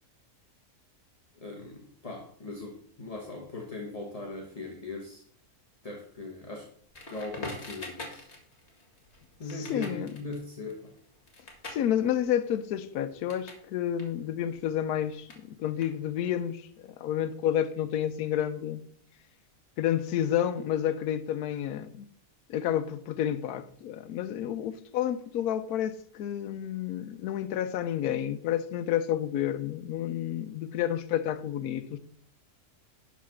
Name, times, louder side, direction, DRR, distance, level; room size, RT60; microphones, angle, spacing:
voice 1, 1.3-5.2 5.8-6.7 7.1-8.3 9.4-10.9, left 3 dB, 25° left, 1.1 m, -39 dB
Crackle, 6.9-13.7 13.9-16.4, left 2 dB, 45° left, 2.1 m, -45 dB
voice 2, 9.7-10.1 11.7-18.9 19.8-22.1 22.5-32.0, left 10 dB, 75° left, 1.2 m, -30 dB
11.0 x 4.1 x 5.8 m
omnidirectional pair, 1.6 m